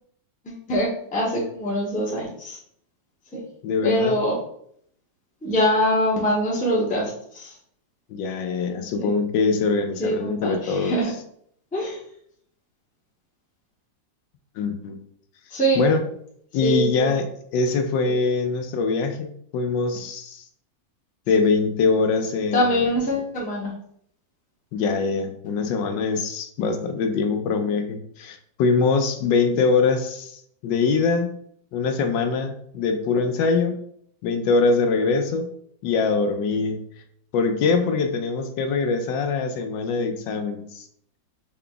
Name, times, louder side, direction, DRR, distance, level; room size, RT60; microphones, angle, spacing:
voice 1, 0.4-2.6 3.3-3.4 3.8-4.4 5.4-7.5 9.0-9.1 10.0-11.1 11.7-12.0 15.5-15.8 16.6-17.1 18.1-18.2 22.5-23.7, equal, 5° left, -4 dB, 0.6 m, -23 dB
voice 2, 3.6-4.2 8.1-11.0 14.6-15.0 15.7-16.0 16.5-19.3 19.5-20.4 21.3-22.9 24.7-31.3 31.7-33.8 34.2-35.5 35.8-36.8 37.3-40.9, left 4 dB, 80° left, 6 dB, 1.3 m, -23 dB
4.7 x 2.3 x 3.7 m, 0.66 s
omnidirectional pair, 2.0 m